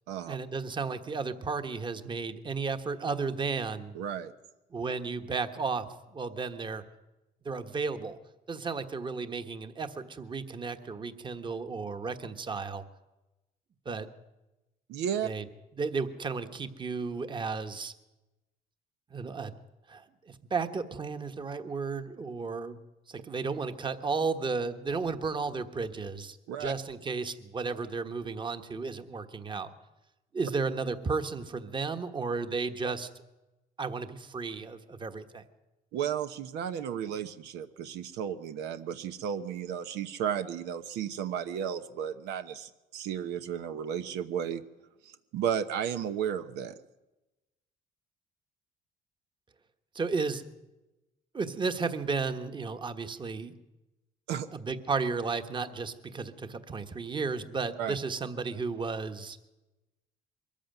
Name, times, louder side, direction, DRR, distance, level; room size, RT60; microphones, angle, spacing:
voice 1, 0.3-3.9 4.7-6.8 7.4-8.2 8.5-12.8 13.8-14.1 15.2-15.4 15.8-17.9 19.1-19.5 19.9-22.8 23.1-29.7 30.3-33.1 33.8-35.4 49.9-50.4 51.3-53.5 54.5-59.4, right 4 dB, 30° right, 9 dB, 1.4 m, -33 dB
voice 2, 3.9-4.3 14.9-15.3 26.5-26.7 35.9-44.6 45.0-46.7 54.3-54.5 57.8-58.0, right 8 dB, 85° right, 9 dB, 1.1 m, -33 dB
22.5 x 14.0 x 9.1 m, 1.0 s
cardioid pair, 110°, 17 cm